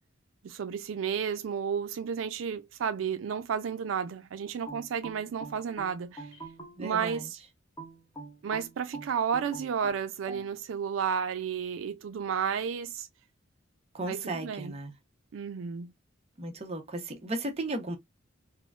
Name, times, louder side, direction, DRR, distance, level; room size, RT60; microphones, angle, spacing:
voice 1, 0.4-6.3 6.8-7.4 8.4-13.1 14.0-14.7 15.3-15.9, right 7 dB, 85° right, 0.4 m, -32 dB
sound 1, 4.7-7.2 7.8-10.5, right 2 dB, 20° left, 1.0 m, -44 dB
voice 2, 6.8-7.3 13.9-14.9 16.4-18.0, right 2 dB, 35° right, 0.7 m, -35 dB
3.7 x 2.1 x 2.3 m
head